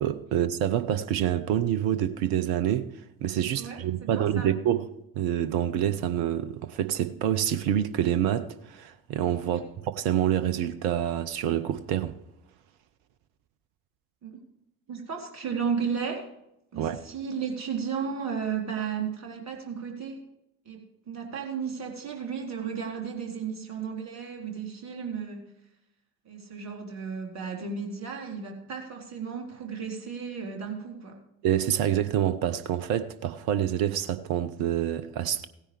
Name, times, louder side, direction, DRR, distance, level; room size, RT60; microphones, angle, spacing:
voice 1, 0.0-2.9 3.2-4.9 5.1-12.1 16.8-17.0 31.4-35.5, right 10 dB, 55° right, 0.9 m, -27 dB
voice 2, 3.6-4.5 9.4-9.6 14.2-14.4 14.9-16.3 16.7-20.2 20.7-25.5 26.3-31.2, right 6 dB, 40° right, 3.8 m, -34 dB
16.5 x 10.0 x 3.3 m
figure-of-eight pair, 55°, 44 cm